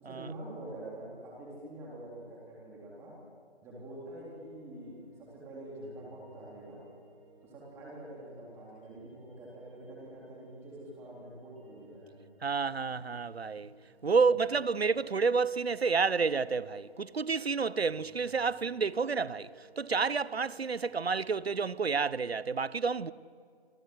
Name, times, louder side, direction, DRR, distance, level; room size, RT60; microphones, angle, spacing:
voice 1, 0.0-3.1 3.6-6.8 7.4-12.1 14.2-14.3, right 1 dB, 5° right, 3.5 m, -46 dB
sound 1, 4.1-21.5, right 5 dB, 30° right, 7.5 m, -61 dB
voice 2, 12.4-13.7 14.0-23.1, right 5 dB, 70° right, 1.0 m, -30 dB
28.5 x 26.5 x 7.9 m
figure-of-eight pair, 155°, 32 cm